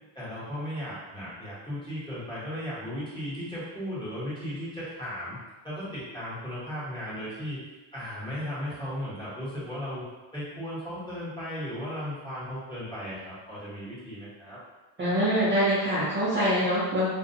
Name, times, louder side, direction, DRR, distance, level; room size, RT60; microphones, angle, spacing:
voice 1, 0.1-5.4 5.6-7.6 7.9-10.0 10.3-14.6, equal, 10° left, -11 dB, 1.2 m, -36 dB
voice 2, 15.0-17.1, equal, 25° right, -10 dB, 0.6 m, -24 dB
2.4 x 2.3 x 2.7 m, 1.2 s
cardioid pair, 120°, 45 cm